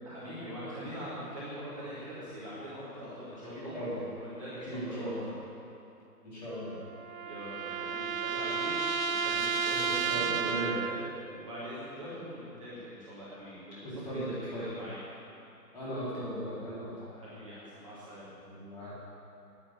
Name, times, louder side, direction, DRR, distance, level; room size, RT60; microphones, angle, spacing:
voice 1, 0.0-3.7 4.2-5.3 7.3-8.8 9.0-15.0 17.1-18.3, equal, 20° right, -11 dB, 2.2 m, -43 dB
voice 2, 3.4-4.0 4.7-5.2 6.2-6.8 9.7-10.8 13.8-14.7 15.7-16.9 18.4-18.9, right 1 dB, 25° left, -10 dB, 4.0 m, -38 dB
sound 1, 6.5-11.3, right 6 dB, 60° right, 0.5 m, -32 dB
10.0 x 9.5 x 9.0 m, 2.7 s
figure-of-eight pair, 165°, 49 cm